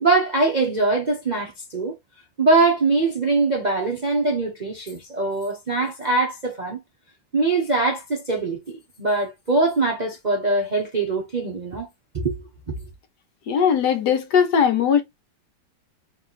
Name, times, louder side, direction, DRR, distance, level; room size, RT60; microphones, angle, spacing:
voice 1, 0.0-2.0 2.4-6.8 7.3-11.9 12.1-12.4 12.7-12.8, right 3 dB, 45° right, 0.6 m, -22 dB
voice 2, 13.5-15.0, left 7 dB, 70° left, 1.3 m, -19 dB
3.3 x 3.0 x 3.9 m
omnidirectional pair, 2.0 m